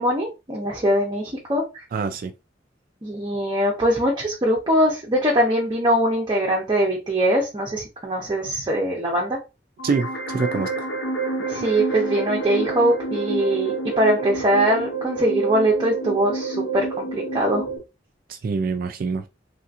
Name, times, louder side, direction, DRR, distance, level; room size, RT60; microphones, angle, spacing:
voice 1, 0.0-1.8 3.0-9.4 11.5-17.7, right 1 dB, 25° right, 0.7 m, -22 dB
voice 2, 1.9-2.3 9.8-10.9 18.3-19.2, right 4 dB, 50° right, 0.3 m, -25 dB
sound 1, 9.8-17.8, right 3 dB, 70° left, 0.7 m, -29 dB
3.3 x 2.8 x 2.4 m
head